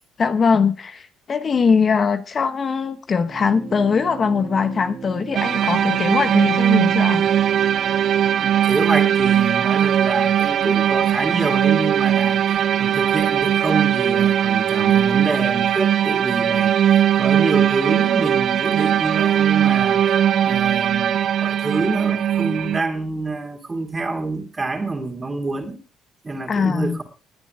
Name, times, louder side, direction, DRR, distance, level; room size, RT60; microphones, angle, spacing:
voice 1, 0.2-7.2 26.5-27.0, left 5 dB, 40° left, 1.1 m, -21 dB
sound 1, 3.3-9.9, right 5 dB, 40° right, 2.1 m, -37 dB
sound 2, 5.3-22.8, right 10 dB, 60° right, 0.8 m, -19 dB
voice 2, 8.4-12.4 12.8-16.8 17.1-20.0 20.4-25.8 26.2-27.0, right 3 dB, 20° right, 3.0 m, -26 dB
20.0 x 9.4 x 3.3 m
cardioid pair, 100°, 0 cm